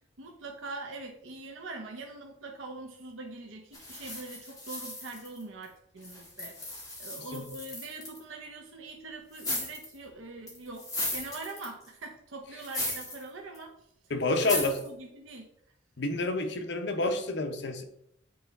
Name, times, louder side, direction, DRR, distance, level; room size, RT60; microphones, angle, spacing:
voice 1, 0.2-14.1 14.4-15.5 16.5-16.7, right 3 dB, 85° right, 2 dB, 0.8 m, -43 dB
sound 1, 3.7-5.6 6.0-8.2 9.3-10.0 10.5-11.9 12.6-13.2 13.5-13.6 14.4-14.9, left 1 dB, 20° left, 2.0 m, -36 dB
voice 2, 14.1-14.7 16.0-17.8, left 2 dB, 60° left, 6 dB, 0.8 m, -29 dB
9.3 x 3.4 x 4.1 m, 0.75 s
head